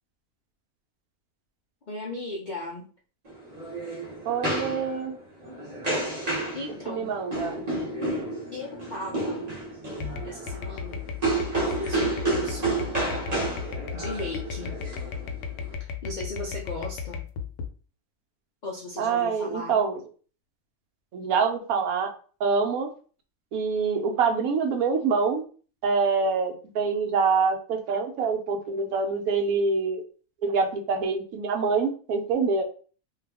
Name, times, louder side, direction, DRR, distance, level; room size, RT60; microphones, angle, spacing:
voice 1, 1.9-2.9 6.1-7.1 8.5-9.4 10.2-11.0 11.5-12.8 13.9-14.7 15.8-17.2 18.6-19.8, left 2 dB, 60° left, -2 dB, 0.5 m, -36 dB
sound 1, 3.3-15.7, right 2 dB, 30° right, 0.9 m, -31 dB
voice 2, 4.2-5.2 6.9-7.7 19.0-20.0 21.1-22.1 22.4-22.9 23.5-25.4 25.8-30.0 30.4-32.6, right 5 dB, 75° right, 4 dB, 1.1 m, -25 dB
sound 2, 10.0-17.7, left 7 dB, 90° left, 1.1 m, -35 dB
2.7 x 2.3 x 3.3 m, 0.40 s
omnidirectional pair, 1.5 m